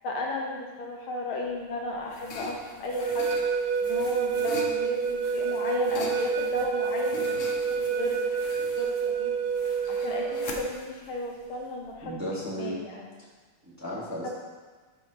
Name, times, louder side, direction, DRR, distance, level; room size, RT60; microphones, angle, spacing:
voice 1, 0.0-3.3 3.8-8.4 8.8-9.4 9.9-13.1 14.2-14.3, left 1 dB, 75° left, -1 dB, 1.9 m, -34 dB
sound 1, 1.5-12.1, left 3 dB, 60° left, 0.8 m, -43 dB
sound 2, 2.9-10.7, right 6 dB, 80° right, 1.5 m, -28 dB
voice 2, 12.0-12.8 13.7-14.3, equal, 10° right, -7 dB, 1.2 m, -34 dB
11.5 x 5.4 x 2.9 m, 1.4 s
omnidirectional pair, 2.3 m